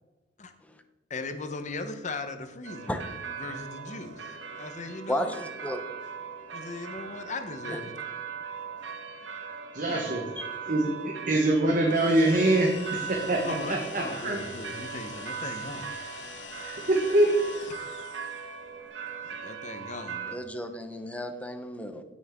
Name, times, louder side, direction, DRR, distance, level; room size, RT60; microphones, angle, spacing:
voice 1, 1.1-5.4 6.5-7.9 9.9-10.2 13.4-15.9 19.4-20.4, left 3 dB, 40° left, 8 dB, 1.0 m, -38 dB
sound 1, 2.6-20.4, right 6 dB, 80° right, 1.2 m, -40 dB
voice 2, 5.1-5.8 7.7-7.8 10.4-10.5 20.3-22.0, equal, 10° left, 8 dB, 0.7 m, -33 dB
voice 3, 9.7-10.2 10.7-13.4 13.7-14.4 16.6-17.3, right 1 dB, 45° right, 1 dB, 1.2 m, -24 dB
sound 2, 11.9-18.6, left 5 dB, 75° left, 1.5 m, -44 dB
16.5 x 6.3 x 3.6 m, 1.2 s
head